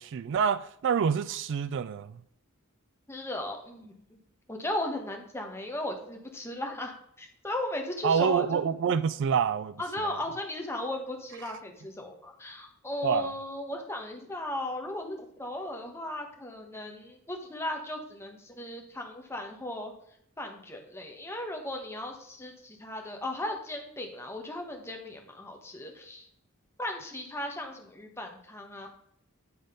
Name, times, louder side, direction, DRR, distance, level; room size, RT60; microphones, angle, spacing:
voice 1, 0.0-2.2 8.0-10.2 13.0-13.3, right 7 dB, 55° right, 0.3 m, -27 dB
voice 2, 3.1-4.2 4.5-8.6 9.8-19.9 20.4-26.3 26.8-28.9, left 1 dB, 10° left, 1.2 m, -36 dB
9.5 x 3.9 x 5.0 m
head